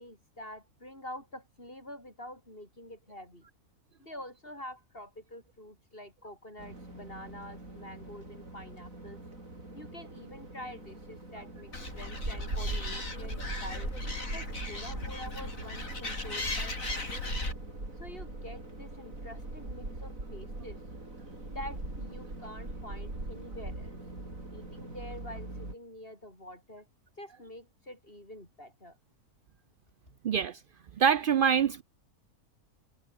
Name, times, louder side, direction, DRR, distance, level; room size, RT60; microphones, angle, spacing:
voice 1, 0.0-3.5 4.0-9.2 9.7-13.9 14.2-17.2 18.0-20.8 21.5-24.0 24.5-26.9 27.2-29.0, left 1 dB, 35° left, 7.6 m, -47 dB
sound 1, 6.6-25.7, right 2 dB, 60° right, 6.7 m, -41 dB
Animal, 11.7-17.5, left 2 dB, 60° left, 5.9 m, -37 dB
voice 2, 30.2-30.6 31.0-31.8, right 7 dB, 80° right, 0.4 m, -25 dB
omnidirectional pair, 1.6 m